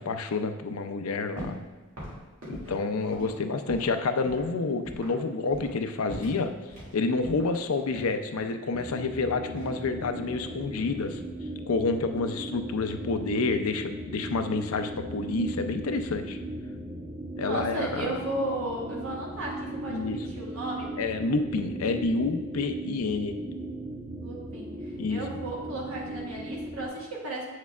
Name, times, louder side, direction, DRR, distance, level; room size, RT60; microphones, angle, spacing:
voice 1, 0.0-1.6 2.4-6.5 6.9-11.2 11.7-16.4 17.4-18.2 19.9-20.2 21.0-23.4 25.0-25.2, left 3 dB, 90° left, 8 dB, 0.5 m, -29 dB
sound 1, 1.4-1.7 2.0-4.0 4.2-4.5 4.9-5.2 5.5-5.8 6.1-6.9 7.2-8.6 9.5-10.5 10.7-11.2, equal, 70° right, 2.1 m, -41 dB
sound 2, 8.7-26.9, right 1 dB, 30° right, 0.7 m, -37 dB
voice 2, 17.4-20.9 24.2-27.5, right 1 dB, 90° right, -3 dB, 1.7 m, -35 dB
8.0 x 6.4 x 2.4 m, 1.3 s
head